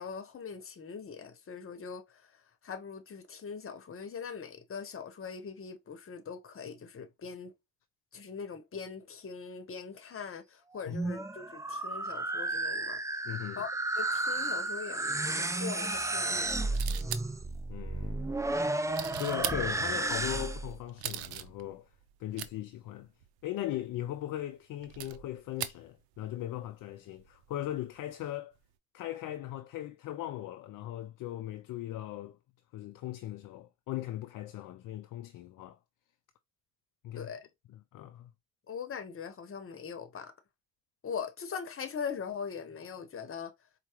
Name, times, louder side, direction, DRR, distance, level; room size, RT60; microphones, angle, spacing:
voice 1, 0.0-7.5 8.1-13.3 13.6-16.8 37.1-37.4 38.7-40.3 41.0-43.5, left 6 dB, 35° left, 1.0 m, -41 dB
sound 1, 10.7-20.8, right 2 dB, 10° right, 0.5 m, -33 dB
voice 2, 13.2-13.6 17.7-18.3 19.2-21.9 22.2-23.1 23.4-28.5 28.9-32.4 32.7-35.8 37.0-37.3 37.9-38.3, left 13 dB, 60° left, 0.5 m, -39 dB
sound 2, 16.7-17.6 18.5-20.0 20.7-22.5 22.9-23.0 23.2-23.3 23.9-24.2 24.8-25.8 26.1-26.6 27.2-28.2 28.5-28.6, right 12 dB, 75° right, 0.6 m, -40 dB
4.5 x 2.2 x 2.9 m
supercardioid pair, 65°, 37 cm